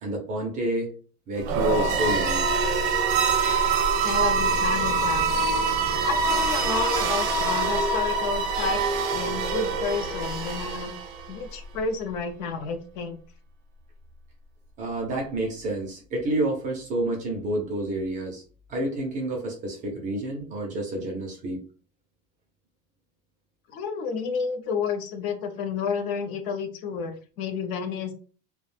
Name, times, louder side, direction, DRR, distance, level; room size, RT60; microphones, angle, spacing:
voice 1, 0.0-0.9 1.3-2.4 14.8-18.4 18.7-21.6, right 1 dB, 20° right, 0 dB, 0.4 m, -29 dB
sound 1, 1.4-11.3, right 4 dB, 70° right, 0.7 m, -24 dB
voice 2, 4.0-5.3 6.0-10.9 11.3-13.2 23.7-28.1, left 5 dB, 55° left, 7 dB, 0.5 m, -31 dB
2.3 x 2.1 x 3.1 m, 0.39 s
cardioid pair, 175°, 36 cm